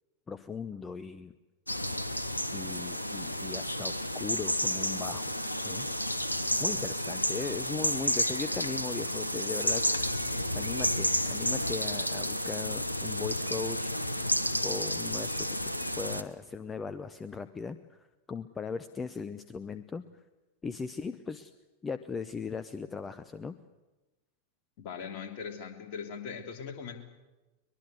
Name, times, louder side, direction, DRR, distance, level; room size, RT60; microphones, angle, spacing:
voice 1, 0.3-1.3 2.5-5.2 5.6-5.9 6.6-9.8 10.5-13.9 14.6-15.5 16.0-18.0 18.3-20.0 20.6-21.5 21.8-23.5, left 5 dB, 15° left, 13 dB, 0.8 m, -38 dB
sound 1, 1.7-16.2, equal, 85° left, 1.0 m, -31 dB
voice 2, 24.8-27.0, left 6 dB, 45° left, 4 dB, 3.1 m, -40 dB
23.0 x 21.0 x 8.1 m, 1.1 s
figure-of-eight pair, 90°, 0 cm